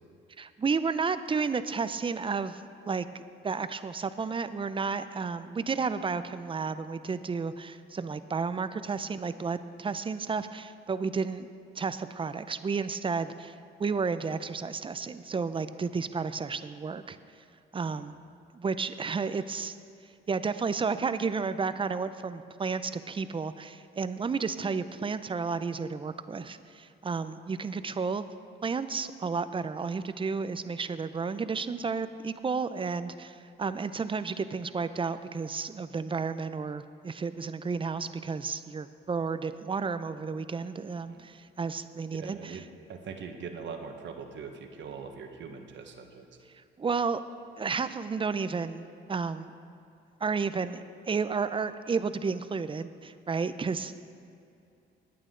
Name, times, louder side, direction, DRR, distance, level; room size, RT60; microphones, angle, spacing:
voice 1, 0.4-3.1 3.4-11.5 11.8-13.5 13.8-17.2 17.7-18.1 18.5-19.8 20.3-28.3 28.6-42.6 46.6-47.2 47.6-49.5 50.2-54.1, right 5 dB, 25° right, 12 dB, 0.6 m, -32 dB
voice 2, 42.1-46.3, right 5 dB, 65° right, 5 dB, 1.3 m, -42 dB
20.5 x 8.7 x 3.8 m, 2.6 s
cardioid pair, 90°, 20 cm